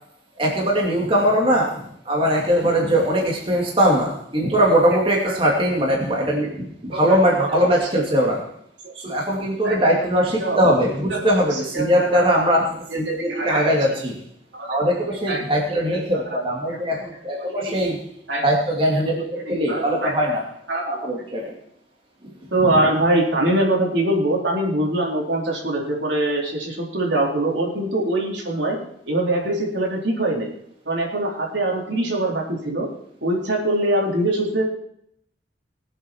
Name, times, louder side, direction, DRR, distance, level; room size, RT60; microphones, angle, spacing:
voice 1, 0.4-1.8 2.1-8.4 9.0-12.6 12.9-14.1 14.7-18.0 18.4-20.4 20.9-21.5 22.9-23.0, equal, 30° right, -2 dB, 2.6 m, -20 dB
voice 2, 11.1-12.4 12.9-13.7 14.6-14.8 15.3-15.4 15.7-16.4 16.6-16.8 17.4-17.8 18.3-18.4 18.9-19.0 19.5-20.1 20.7-21.0 22.5-28.8 29.1-30.5 30.9-32.9 33.2-34.6, right 1 dB, 80° right, -1 dB, 4.0 m, -23 dB
20.5 x 8.0 x 4.6 m, 0.70 s
head